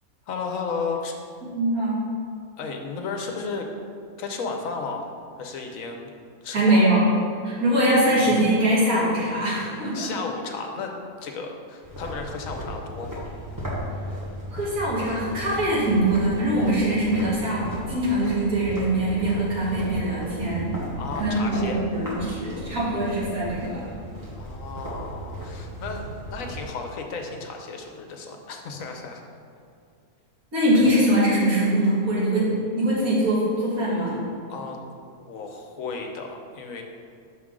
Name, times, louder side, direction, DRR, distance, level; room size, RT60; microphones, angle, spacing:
voice 1, 0.3-1.1 2.6-3.7 4.2-5.1 5.4-6.1 6.4-6.9 9.9-13.3 21.0-21.8 24.3-29.2 34.5-34.8 35.2-36.8, left 4 dB, 70° left, 3 dB, 1.0 m, -33 dB
voice 2, 1.5-2.0 6.5-7.0 7.4-10.1 14.5-20.7 21.2-23.9 30.5-34.2, right 1 dB, 80° right, -8 dB, 2.5 m, -22 dB
sound 1, 11.8-26.6, equal, 15° right, 1.4 m, -36 dB
6.4 x 6.1 x 3.7 m, 2.3 s
omnidirectional pair, 1.5 m